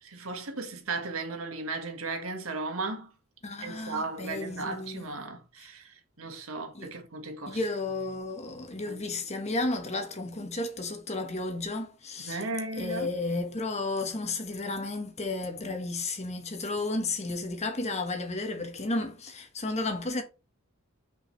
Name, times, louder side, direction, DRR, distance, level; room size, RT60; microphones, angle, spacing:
voice 1, 0.0-3.1 3.6-7.6 8.9-9.0 12.2-13.1, right 3 dB, 85° right, 1.7 m, -36 dB
voice 2, 3.4-5.1 6.7-6.9 7.5-12.4 12.8-20.2, left 2 dB, 30° left, 1.4 m, -33 dB
6.1 x 5.0 x 3.2 m
head